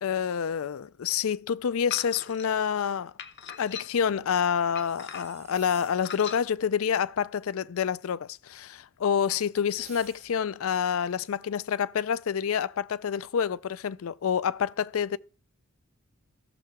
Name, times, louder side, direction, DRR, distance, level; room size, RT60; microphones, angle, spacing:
voice 1, 0.0-3.1 3.6-15.2, left 7 dB, 70° left, 0.4 m, -28 dB
sound 1, 1.9-2.5 3.2-4.1 4.7-5.5 6.0-6.4, left 7 dB, 55° left, 0.9 m, -40 dB
sound 2, 4.8-6.2 9.7-10.6, right 9 dB, 30° right, 0.5 m, -51 dB
16.0 x 6.7 x 3.6 m
head